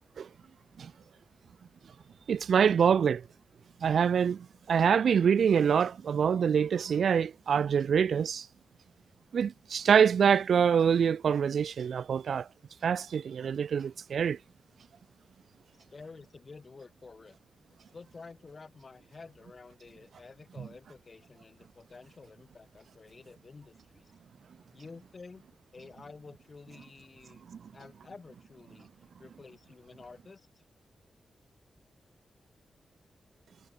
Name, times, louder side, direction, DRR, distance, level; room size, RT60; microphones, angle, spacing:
voice 1, 2.3-3.3 3.8-8.5 9.3-12.5 12.8-14.4 27.5-27.6, right 7 dB, 70° right, 0.3 m, -25 dB
voice 2, 15.9-17.4 17.9-24.1 24.7-25.4 25.7-27.4 27.7-28.9 29.2-30.5, left 4 dB, 35° left, 6.4 m, -50 dB
wide cardioid pair, 135°, 0 cm